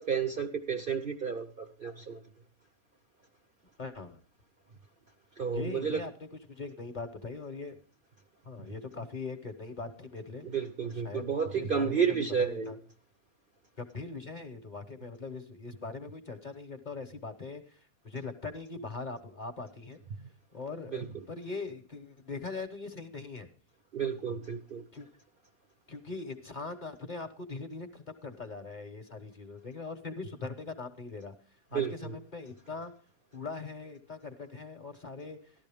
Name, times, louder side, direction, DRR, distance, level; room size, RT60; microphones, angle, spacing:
voice 1, 0.0-2.2 5.4-6.0 10.4-12.7 20.2-20.3 20.9-21.1 23.9-24.8 31.7-32.2, right 6 dB, 50° right, 7 dB, 0.7 m, -31 dB
voice 2, 3.8-4.2 5.5-7.8 8.4-10.4 10.8-11.2 11.5-12.8 13.8-17.8 18.0-20.0 20.5-23.5 24.9-25.1 25.9-31.3 31.7-32.9 33.3-35.4, left 3 dB, 35° left, 7 dB, 1.0 m, -41 dB
13.5 x 11.5 x 3.5 m, 0.43 s
omnidirectional pair, 1.5 m